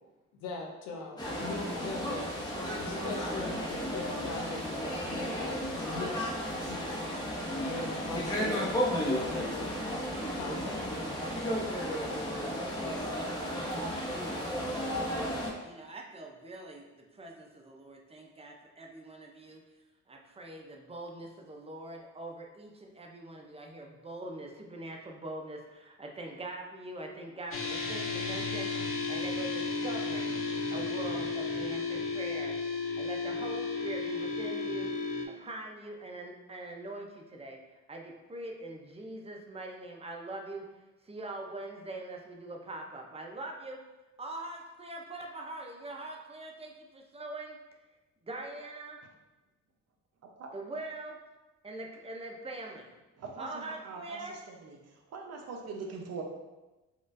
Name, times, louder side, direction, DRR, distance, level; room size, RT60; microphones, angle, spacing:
voice 1, 0.4-6.3 6.6-7.0 7.6-11.2, left 3 dB, 90° left, 1 dB, 0.7 m, -40 dB
sound 1, 1.2-15.5, equal, 15° left, 0.9 m, -34 dB
voice 2, 15.6-19.6 20.1-30.4 30.7-34.9 35.2-40.6 41.0-43.8 44.2-47.6 48.2-49.0 50.5-51.2 51.6-52.9 53.4-54.4, right 2 dB, 20° right, 1 dB, 0.5 m, -43 dB
sound 2, 27.5-35.3, left 4 dB, 45° left, 0.6 m, -33 dB
voice 3, 53.2-54.8 55.1-56.2, right 4 dB, 55° right, 1 dB, 0.7 m, -42 dB
4.2 x 2.4 x 2.5 m, 1.1 s
cardioid pair, 90°, 30 cm